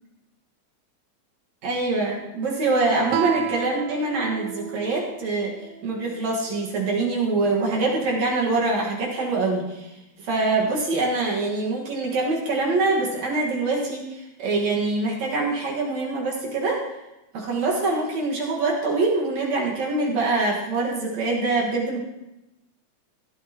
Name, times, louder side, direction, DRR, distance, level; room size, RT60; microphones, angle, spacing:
voice 1, 1.6-5.5 5.8-9.9 10.2-16.9 17.3-22.0, right 3 dB, 65° right, -2 dB, 2.8 m, -24 dB
Guitar, 3.1-6.4, right 9 dB, 80° right, 1.5 m, -32 dB
16.5 x 12.5 x 2.9 m, 0.95 s
omnidirectional pair, 3.6 m